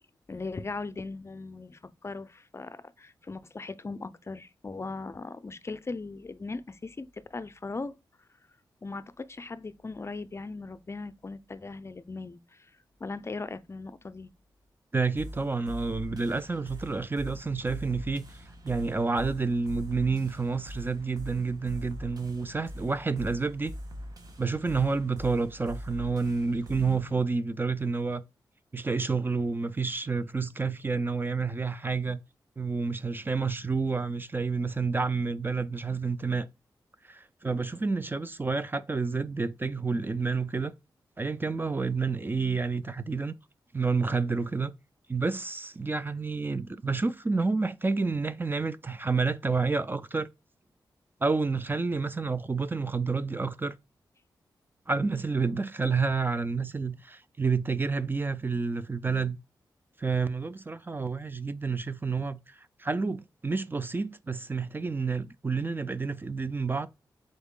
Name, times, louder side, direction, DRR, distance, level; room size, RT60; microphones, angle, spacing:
voice 1, 0.3-8.0 8.8-14.3, left 3 dB, 35° left, 0.5 m, -39 dB
voice 2, 14.9-23.7 24.4-28.2 28.7-32.2 32.6-36.5 37.0-40.7 41.2-43.3 43.7-44.7 45.1-50.3 51.2-53.7 54.9-59.4 60.0-66.9, right 4 dB, 25° right, 0.4 m, -29 dB
sound 1, 15.2-27.2, equal, 55° right, 1.3 m, -43 dB
4.0 x 3.5 x 3.7 m
cardioid pair, 60°, 8 cm